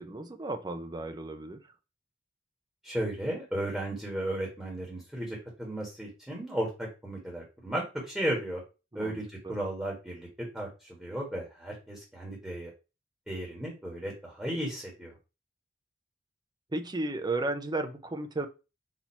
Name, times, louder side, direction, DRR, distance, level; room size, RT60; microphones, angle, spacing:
voice 1, 0.0-1.6 8.9-9.2 9.4-9.5 16.7-18.5, right 2 dB, 25° right, 0.6 m, -34 dB
voice 2, 2.8-8.6 8.9-10.3 10.5-12.7 13.3-15.1, right 1 dB, 5° right, 1.4 m, -35 dB
4.2 x 2.8 x 4.3 m
head